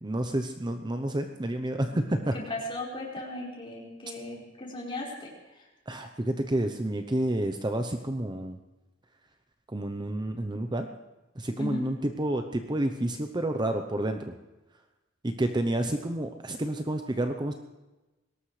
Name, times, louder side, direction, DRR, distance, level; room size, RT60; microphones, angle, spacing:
voice 1, 0.0-2.3 5.9-8.6 9.7-10.9 11.4-14.3 15.2-17.5, right 1 dB, 25° right, 6 dB, 0.8 m, -29 dB
voice 2, 2.5-5.7 11.6-11.9, left 1 dB, 25° left, -4 dB, 4.9 m, -37 dB
21.5 x 18.5 x 3.3 m, 1.1 s
head